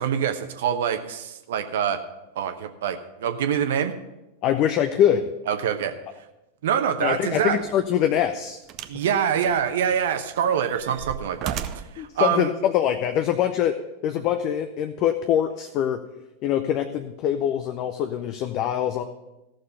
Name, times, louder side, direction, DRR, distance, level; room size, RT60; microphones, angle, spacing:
voice 1, 0.0-2.0 2.4-3.9 5.5-5.9 6.6-7.6 8.9-12.5, right 8 dB, 55° right, 8 dB, 0.9 m, -25 dB
voice 2, 4.4-5.2 7.0-8.6 12.0-13.7 14.0-16.0 16.4-19.0, left 10 dB, 40° left, 8 dB, 0.6 m, -23 dB
sound 1, 7.5-7.7 8.7-9.0 9.4-10.1 10.5-12.0 12.9-13.0, right 10 dB, 35° right, 0.6 m, -35 dB
14.5 x 6.5 x 5.5 m, 0.95 s
figure-of-eight pair, 90°, 0 cm